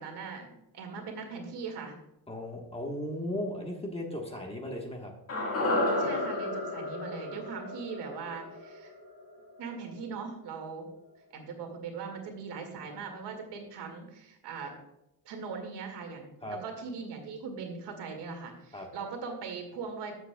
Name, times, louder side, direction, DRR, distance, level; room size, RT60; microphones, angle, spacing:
voice 1, 0.0-2.0 6.0-8.9 9.6-10.9 11.3-14.8 15.3-20.2, right 5 dB, 85° right, 3 dB, 2.2 m, -40 dB
voice 2, 2.3-5.1 16.4-16.6 18.7-18.9, left 1 dB, 15° left, 1 dB, 1.3 m, -36 dB
sound 1, 5.3-9.6 9.9-10.0, left 1 dB, 35° left, 1.8 m, -32 dB
13.5 x 7.8 x 2.3 m, 0.84 s
cardioid pair, 155°, 40 cm